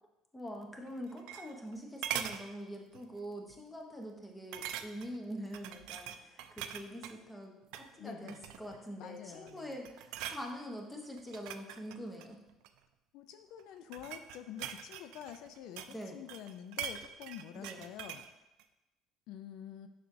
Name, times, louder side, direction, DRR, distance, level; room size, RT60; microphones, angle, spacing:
voice 1, 0.3-12.4 15.9-16.2 17.5-17.8, equal, 10° left, 1 dB, 0.8 m, -44 dB
sound 1, 0.9-1.7 2.0-2.4 2.9-3.2 3.5-3.6 4.5-5.2 5.5-7.2 7.6-7.9 8.3-8.8 9.3-9.6 9.8-10.4 11.2-12.8 13.6-16.0 16.3-18.3 18.6-18.7, right 10 dB, 80° right, 0.3 m, -42 dB
voice 2, 8.0-8.4 9.0-9.7 13.1-18.2 19.3-19.9, left 10 dB, 70° left, 9 dB, 0.3 m, -47 dB
6.8 x 5.9 x 2.6 m, 0.99 s
cardioid pair, 145°, 0 cm